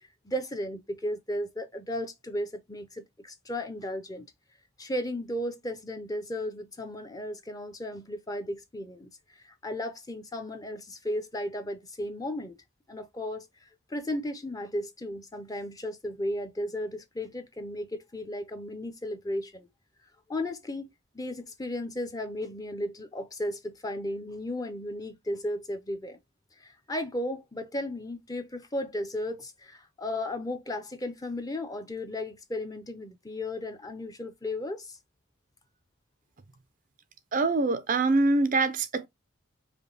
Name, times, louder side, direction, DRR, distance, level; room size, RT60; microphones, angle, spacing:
voice 1, 0.2-4.3 4.8-12.6 12.9-13.5 13.9-19.7 20.3-26.2 26.6-35.0, left 1 dB, 15° left, 0.6 m, -35 dB
voice 2, 37.3-39.1, right 3 dB, 40° right, 0.4 m, -24 dB
5.2 x 2.2 x 3.9 m
head